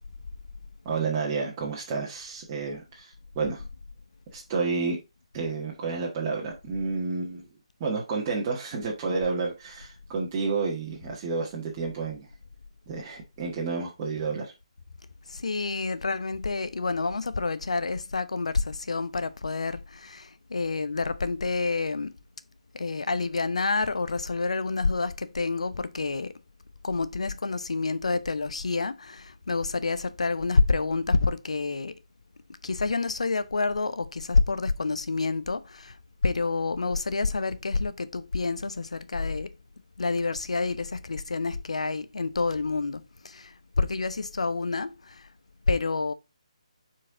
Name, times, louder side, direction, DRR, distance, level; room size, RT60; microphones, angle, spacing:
voice 1, 0.8-3.6 4.3-5.0 5.3-7.5 7.8-12.3 12.9-14.5, right 4 dB, 25° right, 1.7 m, -30 dB
voice 2, 15.3-22.1 22.7-26.3 26.8-32.0 32.6-36.0 36.2-39.6 40.0-45.3 45.7-46.1, left 3 dB, 70° left, 0.7 m, -28 dB
7.3 x 4.6 x 3.8 m
figure-of-eight pair, 150°, 4 cm